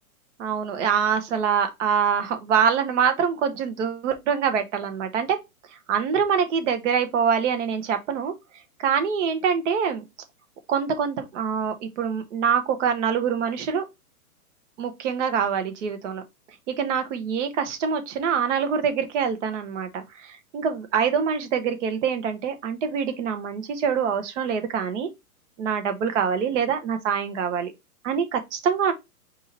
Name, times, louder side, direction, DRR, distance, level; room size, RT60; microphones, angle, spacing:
voice 1, 0.4-5.4 5.9-8.3 8.8-10.0 10.7-13.8 14.8-16.2 16.7-25.1 25.6-27.7 28.0-28.9, right 7 dB, 50° right, 1.1 m, -25 dB
4.9 x 2.7 x 3.9 m
hypercardioid pair, 150°, 45 cm